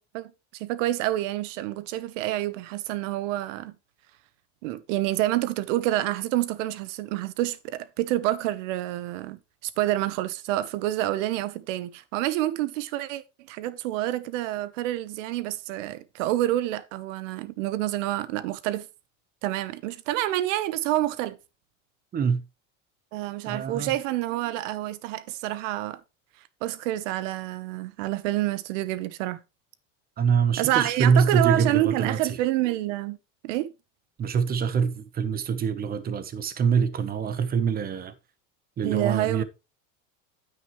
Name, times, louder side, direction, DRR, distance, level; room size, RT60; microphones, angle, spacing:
voice 1, 0.0-3.7 4.6-13.2 13.5-18.9 19.4-21.4 23.1-26.0 26.6-29.4 30.6-33.2 33.4-33.7 38.8-39.4, right 15 dB, 85° right, 1.1 m, -28 dB
voice 2, 23.4-23.9 30.2-32.2 34.2-38.1 38.8-39.4, right 6 dB, 25° right, 1.0 m, -24 dB
9.5 x 9.0 x 3.2 m
cardioid pair, 145°, 37 cm